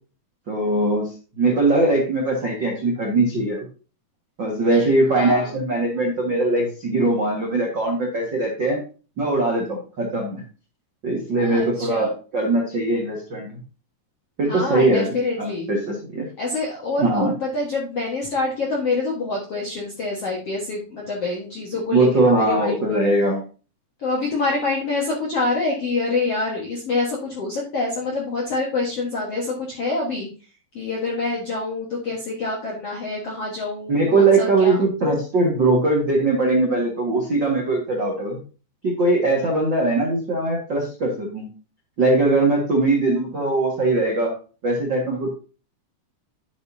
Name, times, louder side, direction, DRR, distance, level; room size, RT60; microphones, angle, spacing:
voice 1, 0.5-1.1 1.4-3.6 4.4-8.8 9.2-10.4 11.0-13.5 14.4-15.1 15.4-16.2 17.0-17.3 21.9-23.4 33.9-38.4 38.8-41.5 42.0-44.3 44.6-45.3, right 2 dB, 55° right, -2 dB, 1.2 m, -21 dB
voice 2, 5.1-5.5 11.4-12.1 14.5-15.7 16.4-23.0 24.0-30.3 30.7-34.8, left 3 dB, 60° left, -3 dB, 1.6 m, -26 dB
11.5 x 7.3 x 2.8 m, 0.36 s
omnidirectional pair, 5.2 m